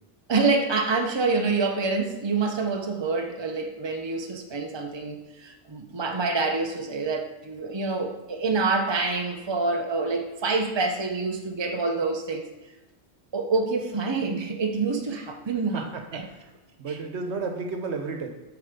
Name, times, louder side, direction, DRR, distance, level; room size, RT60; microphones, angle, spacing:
voice 1, 0.3-12.5 13.3-15.8 16.1-16.2, right 3 dB, 25° right, 3 dB, 0.9 m, -26 dB
voice 2, 15.7-16.4 16.8-18.3, right 4 dB, 75° right, 4 dB, 1.3 m, -32 dB
8.3 x 4.7 x 5.2 m, 1.1 s
omnidirectional pair, 1.2 m